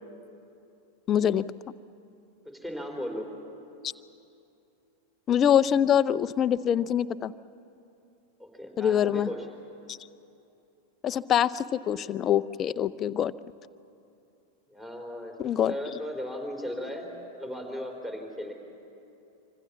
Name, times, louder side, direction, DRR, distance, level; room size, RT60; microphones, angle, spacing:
voice 1, 1.1-1.4 5.3-7.3 8.8-9.3 9.9-10.0 11.0-13.3 15.4-15.7, left 9 dB, 30° left, 14 dB, 0.6 m, -24 dB
voice 2, 2.4-3.3 8.4-9.5 14.7-18.5, equal, 5° right, 3 dB, 3.7 m, -37 dB
25.5 x 25.5 x 7.3 m, 2.7 s
figure-of-eight pair, 90°, 0 cm